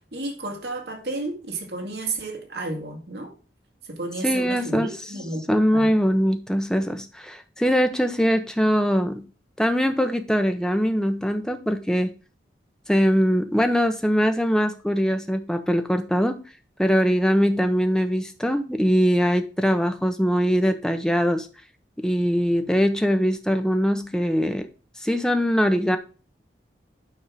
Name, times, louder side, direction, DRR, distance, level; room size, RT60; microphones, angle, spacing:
voice 1, 0.0-3.3 3.9-5.4 5.7-5.9, right 2 dB, 65° right, 2.1 m, -32 dB
voice 2, 4.2-4.9 5.5-9.3 9.6-12.1 12.9-16.4 16.8-21.5 22.0-24.7 25.0-26.0, equal, 5° left, 0.8 m, -22 dB
9.2 x 3.7 x 6.1 m
head